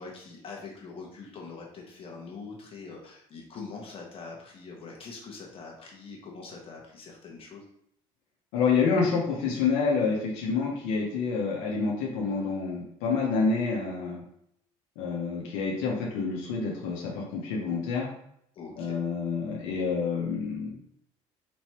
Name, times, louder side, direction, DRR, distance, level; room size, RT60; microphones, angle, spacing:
voice 1, 0.0-7.6 18.5-19.0, left 4 dB, 45° left, -1 dB, 1.2 m, -43 dB
voice 2, 8.5-14.2 15.0-18.1 18.8-20.7, left 5 dB, 90° left, -2 dB, 1.0 m, -28 dB
4.3 x 3.1 x 2.9 m, 0.71 s
cardioid pair, 100°, 13 cm